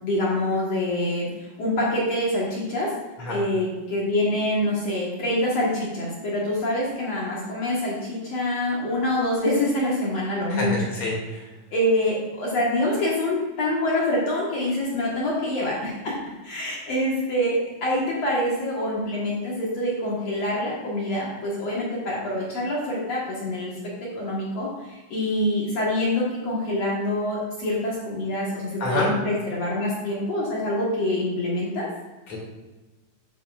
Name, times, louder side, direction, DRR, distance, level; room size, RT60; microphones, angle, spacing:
voice 1, 0.0-2.9 3.3-10.7 11.7-16.1 16.4-23.7 24.0-31.8, left 1 dB, 60° left, -5 dB, 1.7 m, -25 dB
voice 2, 10.5-11.4 28.8-29.1 32.3-32.4, left 2 dB, 45° left, -4 dB, 3.2 m, -27 dB
12.0 x 7.0 x 2.5 m, 1.2 s
omnidirectional pair, 5.2 m